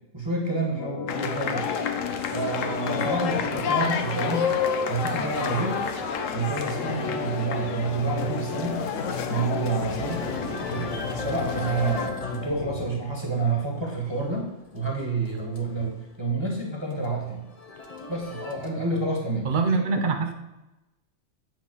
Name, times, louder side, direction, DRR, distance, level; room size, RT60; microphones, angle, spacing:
voice 1, 0.1-1.6 2.3-4.5 4.8-5.8 6.3-8.8 9.3-10.3 10.7-14.5 14.7-17.4 18.1-19.8, right 3 dB, 20° right, -2 dB, 1.7 m, -29 dB
Organ, 0.7-12.9, left 4 dB, 65° left, 1.1 m, -35 dB
sound 1, 1.1-12.1, left 6 dB, 90° left, 1.2 m, -30 dB
sound 2, 10.1-16.3 16.6-18.9, left 3 dB, 35° left, 0.8 m, -40 dB
voice 2, 19.4-20.3, right 4 dB, 45° right, 6 dB, 0.9 m, -24 dB
8.3 x 3.9 x 6.2 m, 0.99 s
omnidirectional pair, 1.3 m